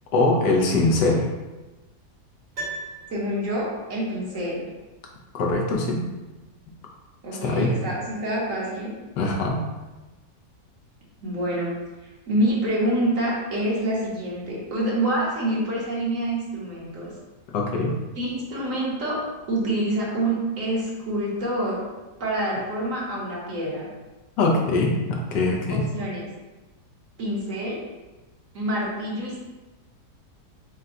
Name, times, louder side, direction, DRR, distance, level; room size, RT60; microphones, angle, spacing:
voice 1, 0.1-1.3 5.3-6.0 7.4-7.7 9.2-9.6 17.5-18.0 24.4-25.8, left 2 dB, 90° left, 0 dB, 1.4 m, -22 dB
Piano, 2.5-3.8 4.1-4.2, right 2 dB, 80° right, 2.2 m, -36 dB
voice 2, 3.1-4.7 7.2-9.0 11.2-11.8 12.3-17.1 18.2-21.8 22.2-23.9 25.7-26.3 27.2-27.8 28.5-29.4, right 1 dB, 55° right, -5 dB, 1.4 m, -27 dB
4.8 x 2.2 x 3.8 m, 1.1 s
omnidirectional pair, 1.8 m